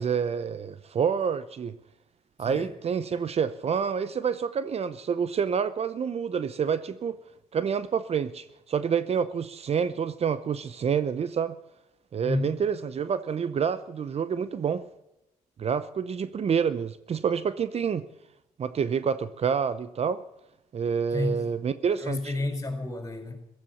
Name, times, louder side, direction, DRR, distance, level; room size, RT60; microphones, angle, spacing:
voice 1, 0.0-1.8 2.4-7.2 7.5-11.5 12.1-14.8 15.6-18.0 18.6-20.2 20.7-22.2, right 7 dB, 45° right, 14 dB, 0.8 m, -28 dB
voice 2, 2.4-2.7 12.2-12.5 21.1-21.5 22.0-23.4, left 2 dB, 20° left, 6 dB, 5.1 m, -30 dB
15.5 x 13.0 x 7.1 m, 0.89 s
cardioid pair, 80°, 14 cm